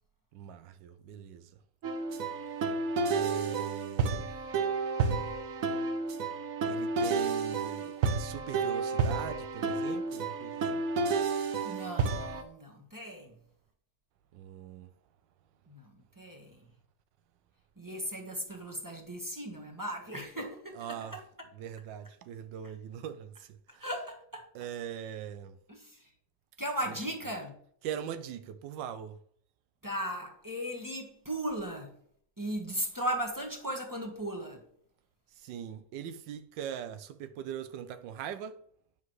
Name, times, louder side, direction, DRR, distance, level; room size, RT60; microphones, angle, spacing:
voice 1, 0.3-1.5 3.1-4.3 6.6-10.9 14.3-14.9 20.7-21.2 21.5-23.9 24.5-25.6 27.8-29.2 35.4-38.6, right 9 dB, 85° right, 1.3 m, -41 dB
sound 1, 1.8-12.4, right 4 dB, 60° right, 1.1 m, -31 dB
voice 2, 11.6-13.3 15.7-16.6 17.8-21.2 23.8-24.5 25.7-26.0 26.6-27.5 29.8-31.9 32.4-34.6, right 1 dB, 10° right, 1.2 m, -37 dB
9.6 x 7.2 x 3.1 m
omnidirectional pair, 1.9 m